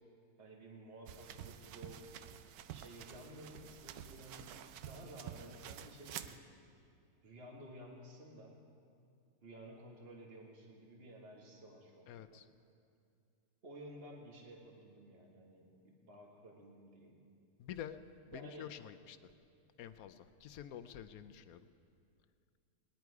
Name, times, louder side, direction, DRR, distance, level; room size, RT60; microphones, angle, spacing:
voice 1, 0.4-2.0 2.7-4.6 4.8-6.4 7.2-8.6 9.4-12.4 13.6-17.2 18.3-18.7, right 1 dB, 40° right, 0 dB, 1.7 m, -54 dB
sound 1, 1.1-6.4, right 10 dB, 85° right, 1.1 m, -50 dB
voice 2, 12.1-12.5 17.6-18.0 18.3-19.3 19.8-21.7, left 10 dB, 75° left, 10 dB, 1.1 m, -48 dB
19.5 x 10.5 x 4.7 m, 2.4 s
omnidirectional pair, 1.6 m